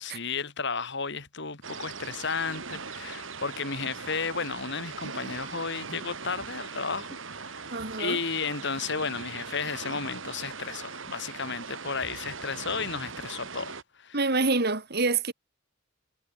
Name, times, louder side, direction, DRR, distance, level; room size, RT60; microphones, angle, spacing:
voice 1, 0.0-14.2, left 5 dB, 60° left, 3.1 m, -33 dB
sound 1, 1.6-13.8, right 5 dB, 70° right, 2.7 m, -40 dB
voice 2, 7.7-8.2 14.1-15.3, right 3 dB, 50° right, 2.6 m, -26 dB
head